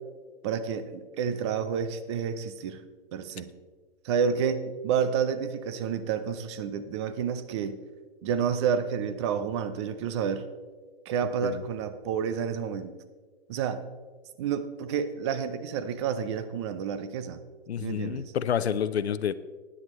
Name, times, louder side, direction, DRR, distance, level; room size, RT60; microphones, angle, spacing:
voice 1, 0.4-2.8 3.1-3.5 4.0-7.8 8.2-10.5 11.1-13.0 13.5-13.8 14.4-17.4 17.8-18.3, right 7 dB, 25° right, 12 dB, 0.6 m, -29 dB
voice 2, 17.7-19.3, left 8 dB, 80° left, 14 dB, 0.7 m, -29 dB
12.5 x 10.0 x 3.1 m, 1.4 s
hypercardioid pair, 140°, 32 cm